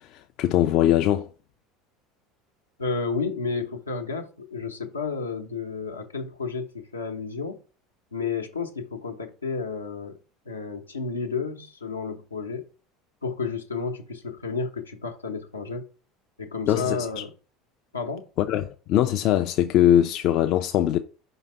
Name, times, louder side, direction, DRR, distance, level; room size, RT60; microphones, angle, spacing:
voice 1, 0.4-1.3 16.7-17.2 18.5-21.0, left 11 dB, 50° left, 0.5 m, -21 dB
voice 2, 2.8-7.6 8.1-10.2 10.5-12.6 13.2-15.9 16.4-17.3 17.9-18.3, left 4 dB, 85° left, 0.9 m, -31 dB
5.5 x 4.0 x 5.4 m
figure-of-eight pair, 70°, 0 cm